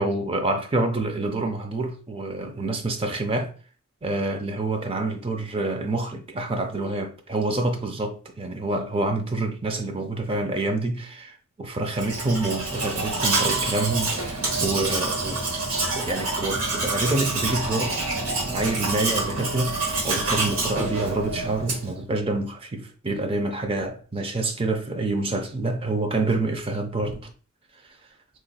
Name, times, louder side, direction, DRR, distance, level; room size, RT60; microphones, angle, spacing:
voice 1, 0.0-3.5 4.0-15.4 15.8-18.1 18.5-27.3, right 2 dB, 25° right, 0.5 m, -27 dB
Domestic sounds home sounds, 11.9-22.0, right 3 dB, 80° right, 1.3 m, -27 dB
4.2 x 3.0 x 2.3 m
head